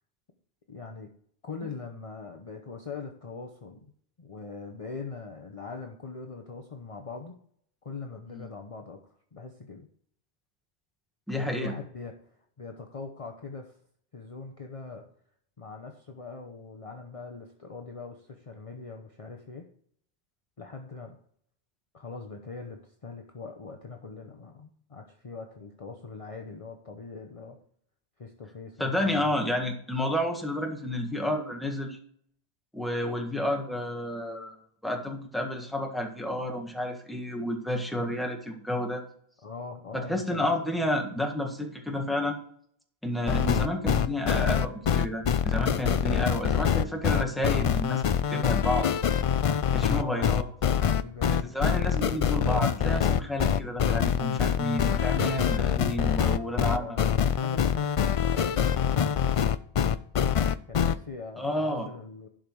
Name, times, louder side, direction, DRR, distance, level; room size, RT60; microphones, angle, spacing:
voice 1, 0.7-1.1 1.4-3.9 4.2-7.4 7.8-9.0 9.3-9.9 11.4-12.1 12.6-13.8 14.1-15.0 15.6-19.6 20.6-21.2 21.9-27.6 28.2-29.3 39.4-40.5 49.9-50.3 51.0-51.5 56.7-59.5 60.7-62.3, left 4 dB, 35° left, 3 dB, 0.9 m, -41 dB
voice 2, 11.3-11.7 28.8-32.0 32.7-34.6 34.8-39.0 39.9-42.4 43.0-48.0 48.3-48.9 49.7-50.4 51.5-57.0 61.4-61.9, left 1 dB, ahead, 2 dB, 1.6 m, -30 dB
sound 1, 43.3-60.9, left 8 dB, 60° left, 0.3 m, -25 dB
11.5 x 5.2 x 4.7 m, 0.63 s
omnidirectional pair, 1.1 m